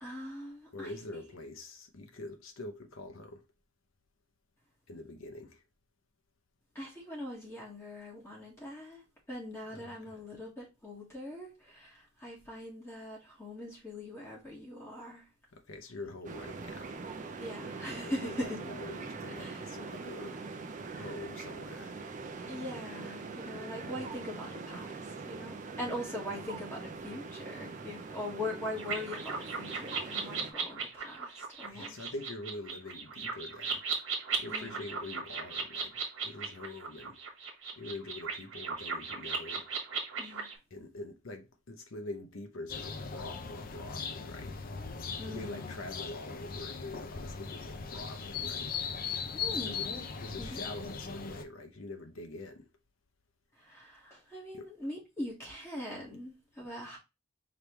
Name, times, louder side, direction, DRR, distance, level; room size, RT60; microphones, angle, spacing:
voice 1, 0.0-0.9 6.7-9.0 9.3-15.2 17.4-18.6 19.3-19.6 20.9-21.1 22.5-25.0 25.3-32.0 34.5-34.9 40.2-40.5 45.2-45.8 49.3-50.0 50.4-50.5 53.6-57.0, left 1 dB, 15° left, 1.6 m, -42 dB
voice 2, 0.7-3.4 4.9-5.6 9.7-10.2 15.5-17.0 18.0-20.4 20.9-22.0 23.8-24.1 31.6-33.8 34.4-37.2 37.7-39.7 40.7-44.6 45.3-48.8 49.6-49.8 50.2-52.7 54.5-54.7, left 2 dB, 85° left, 0.8 m, -45 dB
sound 1, 16.2-30.5, right 4 dB, 40° right, 0.6 m, -43 dB
sound 2, 28.8-40.6, right 5 dB, 70° right, 1.5 m, -37 dB
sound 3, 42.7-51.4, left 5 dB, 45° left, 0.6 m, -39 dB
5.0 x 3.3 x 3.1 m
head